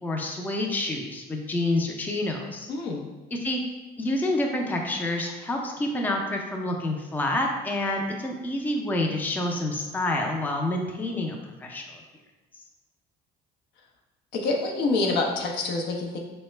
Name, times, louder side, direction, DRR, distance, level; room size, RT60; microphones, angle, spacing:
voice 1, 0.0-2.7 3.4-3.6 4.0-12.0, left 1 dB, 10° left, 1 dB, 0.4 m, -28 dB
voice 2, 2.7-3.0 14.3-16.2, left 3 dB, 75° left, 0 dB, 0.6 m, -26 dB
3.8 x 2.1 x 3.1 m, 1.2 s
cardioid pair, 110°, 17 cm